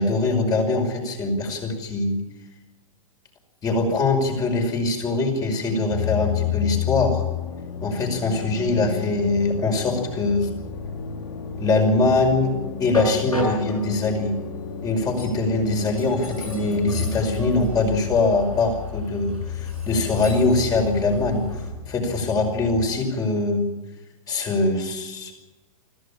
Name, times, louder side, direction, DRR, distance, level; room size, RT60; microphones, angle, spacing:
voice 1, 0.0-2.2 3.6-7.2 7.8-10.5 11.6-14.4 14.8-21.5 21.9-23.7 24.3-25.3, left 3 dB, 20° left, 4 dB, 5.5 m, -22 dB
Train, 5.0-21.7, left 1 dB, 85° left, 7.8 m, -37 dB
sound 1, 5.9-22.9, left 8 dB, 50° left, 2.9 m, -32 dB
25.0 x 16.0 x 8.7 m, 1.1 s
figure-of-eight pair, 105°, 18 cm